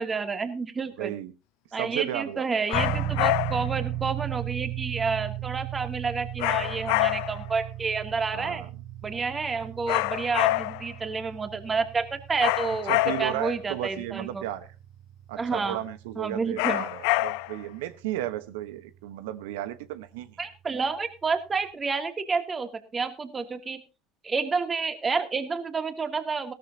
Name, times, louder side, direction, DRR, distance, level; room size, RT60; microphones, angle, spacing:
voice 1, 0.0-1.1 1.7-8.6 9.0-14.4 15.4-15.8 16.2-16.8 20.4-23.8 24.2-26.5, right 4 dB, 25° right, 2.6 m, -29 dB
voice 2, 1.0-1.3 1.8-2.6 8.3-8.7 12.9-14.7 15.3-20.4, right 13 dB, 80° right, 1.1 m, -34 dB
sound 1, 2.7-3.7 6.4-7.5 9.9-10.9 12.4-13.5 16.6-17.6, left 20 dB, 70° left, 0.5 m, -26 dB
sound 2, 2.7-19.5, right 11 dB, 55° right, 3.7 m, -37 dB
17.5 x 13.0 x 2.8 m
hypercardioid pair, 80°, 0 cm